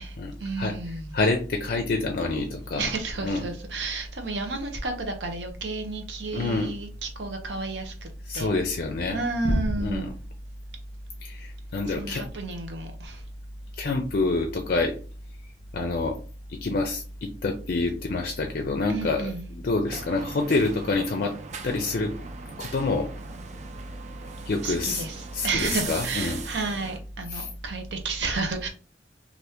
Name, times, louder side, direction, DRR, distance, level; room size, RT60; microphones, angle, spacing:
voice 1, 0.4-1.1 2.8-7.9 8.3-8.5 9.1-10.1 11.9-13.2 18.9-19.5 24.6-28.7, right 3 dB, 85° right, 0.7 m, -31 dB
voice 2, 1.1-2.9 3.2-3.4 6.3-6.7 8.3-9.2 9.8-10.0 11.2-12.2 13.8-15.0 15.7-16.2 16.5-19.3 19.6-21.3 21.6-22.1 22.6-23.1 24.5-25.0 25.3-26.4 27.3-27.4, left 3 dB, 55° left, 0.4 m, -27 dB
sound 1, 19.9-27.0, right 5 dB, 40° right, 0.4 m, -39 dB
2.7 x 2.5 x 3.4 m
head